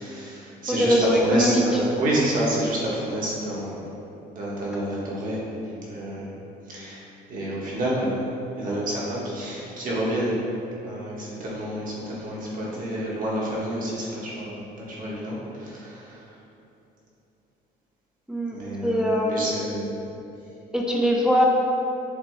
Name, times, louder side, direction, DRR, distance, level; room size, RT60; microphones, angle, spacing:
voice 1, 0.0-3.9 4.3-5.4 5.8-6.3 6.7-7.0 7.3-8.3 8.5-10.4 10.8-16.3 18.5-19.9, right 1 dB, 55° right, -6 dB, 1.2 m, -29 dB
voice 2, 0.7-1.6 18.3-18.6 18.8-19.6 20.7-21.4, equal, 5° right, -2 dB, 0.4 m, -22 dB
6.7 x 2.2 x 3.1 m, 2.9 s
cardioid pair, 110°, 17 cm